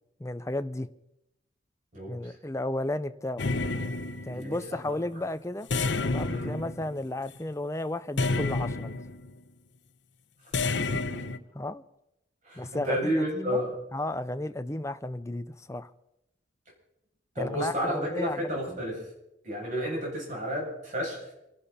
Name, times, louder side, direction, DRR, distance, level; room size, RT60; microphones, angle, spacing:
voice 1, 0.2-0.9 2.1-3.5 4.3-5.7 6.0-9.0 11.5-11.8 12.6-13.6 13.9-15.9 17.4-18.8, left 1 dB, 15° left, 0.6 m, -33 dB
voice 2, 1.9-2.4 4.3-4.6 4.8-4.9 6.3-6.6 10.7-11.3 12.4-13.7 17.3-19.1 19.4-21.3, equal, 45° right, 7.7 m, -32 dB
sound 1, 3.4-4.7 5.7-7.4 8.2-9.3 10.5-11.4, left 3 dB, 70° left, 0.9 m, -30 dB
28.0 x 12.0 x 4.3 m
head